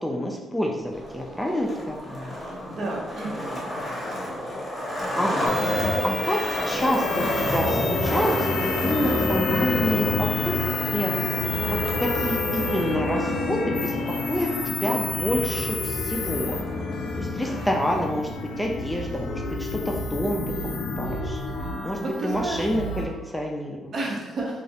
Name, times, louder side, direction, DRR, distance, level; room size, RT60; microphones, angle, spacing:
voice 1, 0.0-2.4 5.2-6.4 6.6-8.5 8.8-10.6 10.9-11.1 11.6-14.0 14.3-16.6 17.2-20.4 21.0-21.4 21.8-23.9, equal, 5° left, 0 dB, 0.3 m, -28 dB
Skateboard, 0.8-17.9, equal, 20° left, 0.7 m, -32 dB
voice 2, 2.6-3.7 22.0-22.7 23.9-24.6, right 2 dB, 60° right, -2 dB, 0.6 m, -31 dB
sound 1, 5.5-23.1, left 3 dB, 85° left, 0.3 m, -28 dB
2.3 x 2.0 x 2.7 m, 1.2 s
cardioid pair, 90°, 0 cm